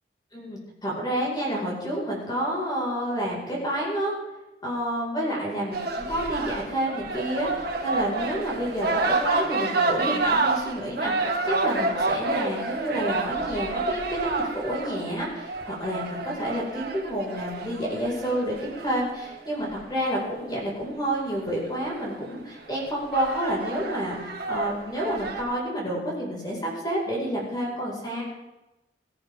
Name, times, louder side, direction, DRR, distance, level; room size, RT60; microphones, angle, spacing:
voice 1, 0.3-4.1 4.6-28.2, right 1 dB, 25° left, -4 dB, 4.8 m, -29 dB
sound 1, 5.7-19.9 21.5-21.6 22.0-22.4 22.9-25.4, right 3 dB, 60° right, 1.9 m, -29 dB
20.5 x 14.0 x 3.5 m, 1.0 s
head